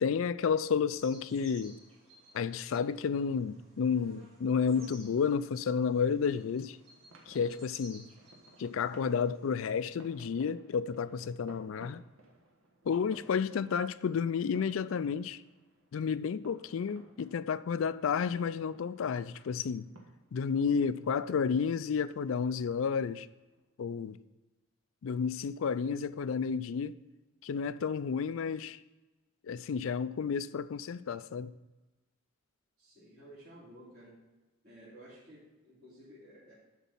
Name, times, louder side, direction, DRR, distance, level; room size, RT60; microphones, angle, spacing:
voice 1, 0.0-1.8 2.3-6.8 7.3-8.1 8.6-12.0 12.8-15.4 15.9-19.9 20.3-23.3 23.8-24.2 25.0-27.0 27.4-28.8 29.4-31.5, left 6 dB, 70° left, 0.4 m, -31 dB
sound 1, 0.9-9.5, right 1 dB, 30° right, 2.7 m, -56 dB
sound 2, 4.6-23.6, right 1 dB, 80° right, 1.5 m, -60 dB
voice 2, 32.8-34.2 34.6-36.5, right 1 dB, 50° right, 3.2 m, -54 dB
11.5 x 4.1 x 5.5 m
head